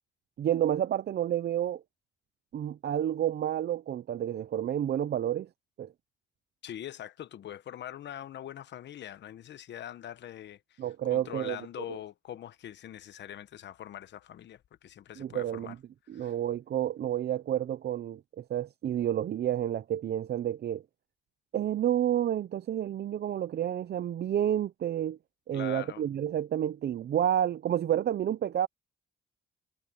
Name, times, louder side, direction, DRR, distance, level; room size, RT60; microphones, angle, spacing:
voice 1, 0.4-1.8 2.5-5.5 5.8-5.9 10.8-11.6 11.9-12.0 15.2-15.8 16.1-20.8 21.5-25.2 25.5-28.7, right 11 dB, 55° right, 0.7 m, -30 dB
voice 2, 6.6-10.8 11.1-15.7 16.1-16.3 25.5-26.0, left 11 dB, 65° left, 1.0 m, -43 dB
cardioid pair, 90°, 20 cm